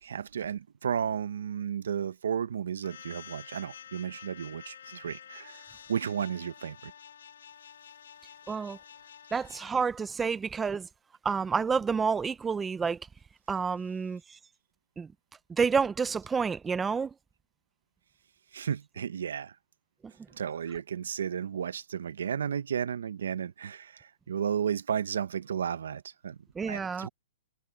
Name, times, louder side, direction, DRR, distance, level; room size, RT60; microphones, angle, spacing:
voice 1, 0.0-6.9 18.5-19.5 20.3-26.4 26.7-27.1, right 8 dB, 80° right, 0.9 m, -33 dB
sound 1, 2.8-9.7, left 8 dB, 80° left, 2.3 m, -49 dB
voice 2, 8.5-8.8 9.3-10.9 11.2-13.0 13.5-14.4 15.0-15.1 15.5-17.1 26.6-27.1, right 5 dB, 10° right, 0.4 m, -29 dB
hypercardioid pair, 160°, 0 cm